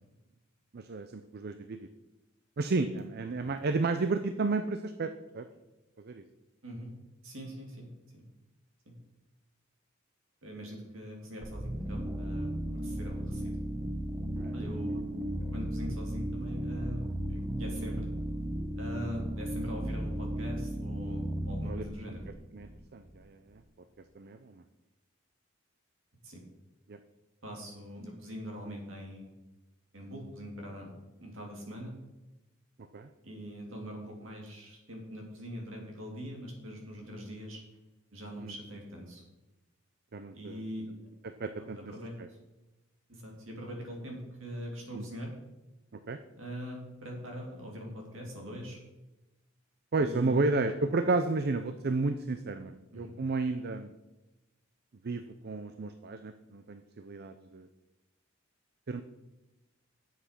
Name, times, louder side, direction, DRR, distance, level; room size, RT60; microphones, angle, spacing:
voice 1, 0.7-1.9 2.6-5.5 6.0-6.2 14.3-14.5 17.9-18.0 21.7-21.9 22.5-23.6 24.2-24.6 26.9-27.0 28.6-28.8 32.9-33.1 38.4-38.5 40.1-40.6 41.2-41.9 42.2-42.3 44.9-45.0 45.9-46.2 49.9-53.9 55.0-57.7 58.9-59.0, right 3 dB, 50° right, 10 dB, 0.5 m, -32 dB
voice 2, 7.2-7.9 8.1-8.2 8.8-8.9 10.4-13.6 14.5-15.0 15.5-18.1 18.7-22.2 26.2-26.4 27.4-29.3 29.9-30.9 31.2-31.9 33.2-37.6 38.1-39.2 40.3-40.9 41.6-42.4 43.1-45.3 46.4-48.8 50.0-50.5 52.9-53.1, equal, 70° right, 0 dB, 3.1 m, -42 dB
sound 1, 11.4-23.2, right 1 dB, 15° right, 0.7 m, -35 dB
10.0 x 7.6 x 5.9 m, 1.0 s
head